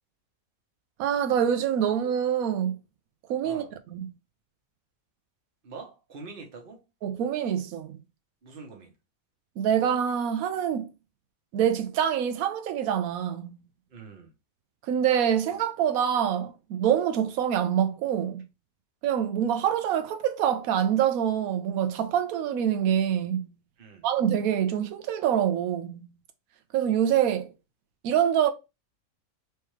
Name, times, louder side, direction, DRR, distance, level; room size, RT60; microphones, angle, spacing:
voice 1, 1.0-2.7 3.3-3.6 3.9-4.0 7.0-8.0 9.6-10.9 11.5-13.6 14.9-18.4 19.0-23.5 24.0-26.1 26.7-27.5 28.0-28.5, right 9 dB, 90° right, 1.0 m, -25 dB
voice 2, 5.6-6.8 8.4-8.9 13.9-14.3 23.8-24.1, right 4 dB, 45° right, 1.1 m, -44 dB
3.3 x 3.3 x 3.1 m
omnidirectional pair, 1.5 m